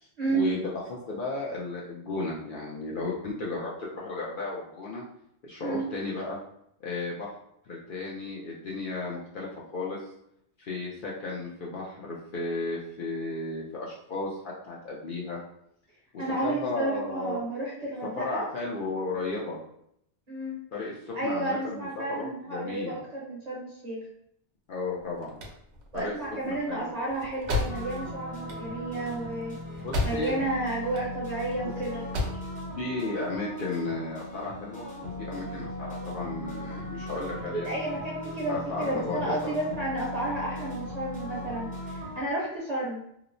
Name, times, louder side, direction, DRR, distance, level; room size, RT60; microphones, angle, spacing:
voice 1, 0.3-5.0 5.4-6.4 6.8-7.3 7.7-10.0 10.6-15.4 16.1-17.4 18.0-19.6 20.7-23.0 24.7-25.4 25.9-26.1 26.4-26.9 29.8-30.4 31.6-31.8 32.8-37.7 38.5-39.5, left 3 dB, 60° left, -4 dB, 0.6 m, -34 dB
voice 2, 16.2-18.5 20.3-20.6 21.1-24.0 25.9-29.6 30.0-32.0 37.5-43.0, right 2 dB, 40° right, -5 dB, 0.7 m, -32 dB
sound 1, 24.9-30.5 30.8-31.6 31.9-32.5, left 2 dB, 75° right, 0.9 m, -33 dB
sound 2, 27.7-42.2, left 1 dB, 10° left, 0.5 m, -38 dB
2.9 x 2.0 x 2.5 m, 0.73 s
omnidirectional pair, 1.2 m